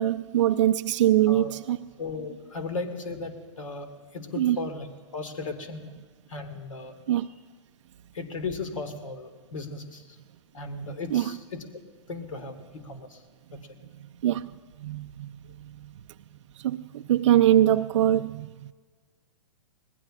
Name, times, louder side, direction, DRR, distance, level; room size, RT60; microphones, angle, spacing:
voice 1, 0.0-1.8 4.4-4.6 7.1-7.3 11.1-11.2 14.2-14.5 14.8-15.3 16.6-18.5, right 12 dB, 70° right, 0.5 m, -22 dB
voice 2, 2.0-4.9 5.1-5.9 6.3-6.9 8.1-10.2 10.5-11.7 12.1-13.2 13.5-13.6 15.4-15.5, left 3 dB, 80° left, 2.0 m, -36 dB
26.0 x 19.5 x 2.5 m
hypercardioid pair, 125°, 16 cm